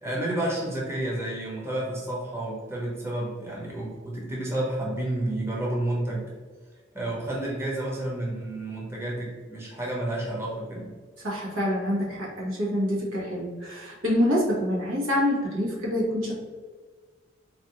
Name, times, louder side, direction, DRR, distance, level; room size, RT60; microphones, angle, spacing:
voice 1, 0.0-6.3 6.9-10.9, right 1 dB, 15° right, -5 dB, 0.8 m, -30 dB
voice 2, 11.2-16.4, left 1 dB, 85° right, -4 dB, 1.2 m, -26 dB
4.1 x 2.5 x 2.9 m, 1.4 s
head